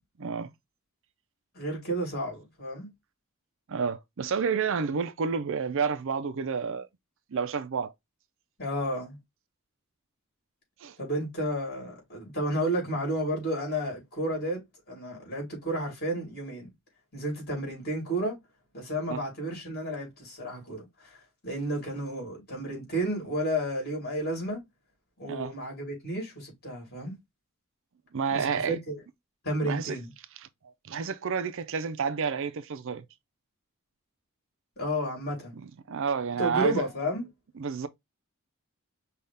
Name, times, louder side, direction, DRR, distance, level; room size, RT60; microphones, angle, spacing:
voice 1, 0.2-0.5 3.7-6.9 7.3-7.9 10.8-11.0 19.1-19.2 25.3-25.5 28.1-28.8 29.6-30.0 30.4-30.5 30.8-33.1 35.6-36.8 37.6-37.9, right 6 dB, 65° right, 0.5 m, -30 dB
voice 2, 1.5-2.9 8.6-9.2 11.0-16.7 17.1-18.4 18.7-21.2 21.4-24.6 25.2-27.2 28.3-29.0 29.4-30.1 34.8-35.5 36.4-37.3, right 1 dB, 50° left, 3.3 m, -32 dB
5.5 x 2.4 x 3.3 m
head